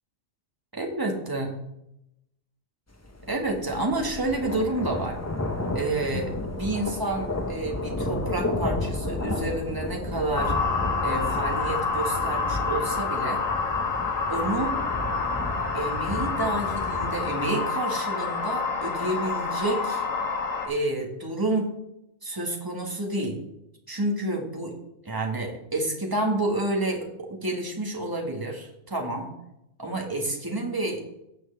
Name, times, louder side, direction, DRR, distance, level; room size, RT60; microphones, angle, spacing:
voice 1, 0.7-1.5 3.3-5.2 5.7-10.5 11.0-13.4 14.3-14.8 15.7-20.0 20.6-21.7 22.2-23.4 23.9-24.7 25.0-29.3 29.8-31.0, right 2 dB, 15° right, 0 dB, 1.7 m, -29 dB
sound 1, 3.0-17.5, left 2 dB, 15° left, 0.7 m, -32 dB
sound 2, 10.3-20.7, left 4 dB, 85° left, 1.6 m, -28 dB
16.0 x 6.2 x 3.4 m, 0.83 s
omnidirectional pair, 1.3 m